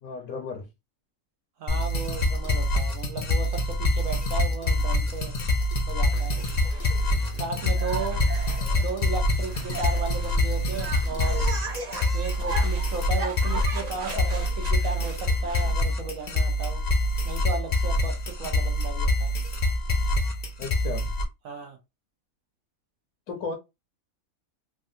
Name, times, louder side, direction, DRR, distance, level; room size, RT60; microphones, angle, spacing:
voice 1, 0.0-0.7 20.6-21.1 23.3-23.5, left 4 dB, 80° left, 1.1 m, -34 dB
voice 2, 1.6-5.3 5.9-6.4 7.4-8.3 8.8-11.5 12.1-16.8 17.2-19.3 21.4-21.8, right 4 dB, 75° right, 1.1 m, -35 dB
sound 1, 1.7-21.2, left 1 dB, 45° left, 0.5 m, -25 dB
sound 2, 6.1-15.7, right 3 dB, 45° right, 0.5 m, -38 dB
3.3 x 2.3 x 2.6 m
omnidirectional pair, 1.4 m